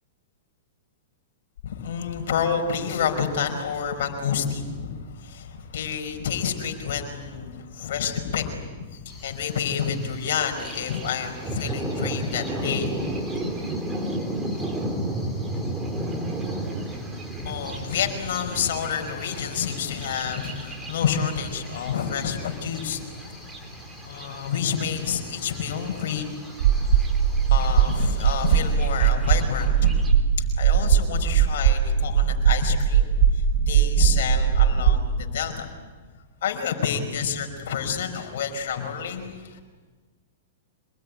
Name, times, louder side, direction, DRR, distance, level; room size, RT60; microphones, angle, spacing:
voice 1, 1.6-13.5 17.4-23.6 24.0-26.2 27.5-30.0 30.4-35.7 36.4-39.6, left 7 dB, 70° left, 5 dB, 5.3 m, -29 dB
sound 1, 9.1-28.8, left 2 dB, 5° left, 6.2 m, -47 dB
Thunder, 10.6-30.1, right 1 dB, 15° right, 3.9 m, -34 dB
sound 2, 26.6-35.1, right 8 dB, 70° right, 1.3 m, -20 dB
27.5 x 20.5 x 9.9 m, 1.4 s
hypercardioid pair, 135°, 0 cm